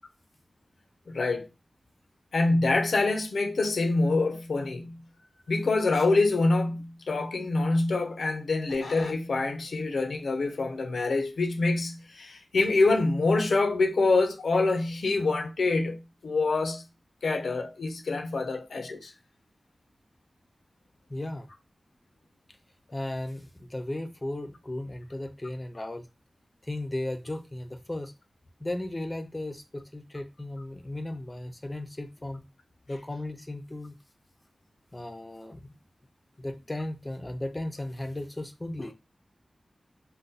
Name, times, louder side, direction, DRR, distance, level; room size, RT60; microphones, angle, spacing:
voice 1, 1.1-1.5 2.3-5.0 5.5-16.8 17.2-19.1, left 3 dB, 90° left, 0.6 m, -26 dB
voice 2, 21.1-21.5 22.9-26.1 26.6-28.1 28.6-32.4 32.9-34.0 34.9-35.8 36.4-38.9, left 1 dB, 20° left, 0.5 m, -36 dB
2.6 x 2.2 x 3.8 m
wide cardioid pair, 90°, 0 cm